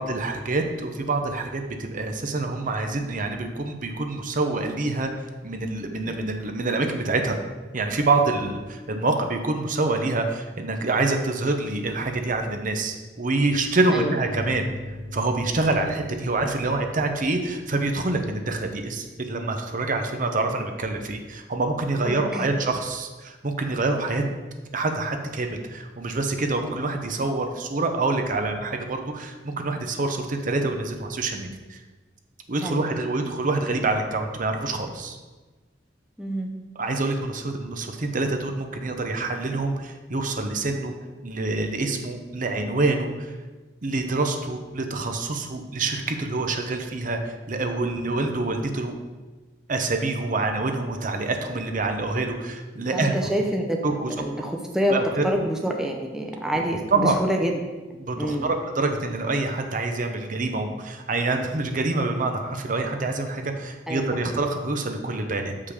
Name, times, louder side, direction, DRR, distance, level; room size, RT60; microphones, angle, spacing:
voice 1, 0.0-5.1 5.4-7.4 7.7-14.7 15.1-24.2 24.7-31.8 32.5-35.2 36.8-40.9 41.2-43.3 43.8-49.0 49.7-53.1 53.8-54.1 54.9-55.2 56.9-57.1 58.0-65.5, right 2 dB, 45° right, 5 dB, 0.7 m, -26 dB
sound 1, 14.3-19.4, left 1 dB, 70° left, 1.1 m, -41 dB
voice 2, 22.0-22.5 32.6-32.8 36.2-36.5 52.9-53.8 54.1-54.9 55.2-57.5 58.2-58.5 63.9-64.0, equal, 5° right, 0 dB, 0.6 m, -27 dB
6.5 x 5.6 x 4.9 m, 1.2 s
head